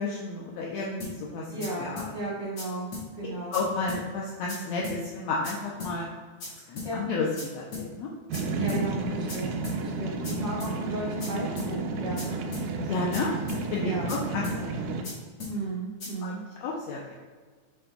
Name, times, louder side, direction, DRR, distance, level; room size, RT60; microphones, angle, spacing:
voice 1, 0.0-2.1 3.2-6.1 6.5-8.1 12.8-13.3 13.7-14.9 16.2-16.3 16.6-17.1, left 3 dB, 75° left, -3 dB, 1.7 m, -32 dB
sound 1, 1.0-1.1 1.6-1.7 2.0-2.1 2.6-2.7 2.9-3.1 3.5-3.6 3.9-4.0 4.5-4.6 4.8-5.0 5.4-5.5 5.8-5.9 6.4-6.5 6.8-6.9 7.4-7.5 7.7-7.9 8.3-8.4 8.7-8.8 9.3-9.4 9.6-9.8 10.2-10.3 10.6-10.7 11.2-11.3 11.6-11.7 12.2-12.3 12.5-12.7 13.1-13.2 13.5-13.6 14.1-14.2 14.4-14.6 15.0-15.1 15.4-15.5 16.0-16.1, left 4 dB, 50° left, 2.6 m, -37 dB
voice 2, 1.5-2.9 3.2-3.6 6.8-7.0 8.6-12.4 13.8-14.1 15.5-16.4, right 2 dB, 25° left, -9 dB, 1.7 m, -35 dB
sound 2, 8.3-15.0, right 3 dB, 85° right, 2.2 m, -32 dB
7.2 x 6.2 x 2.3 m, 1.5 s
omnidirectional pair, 3.5 m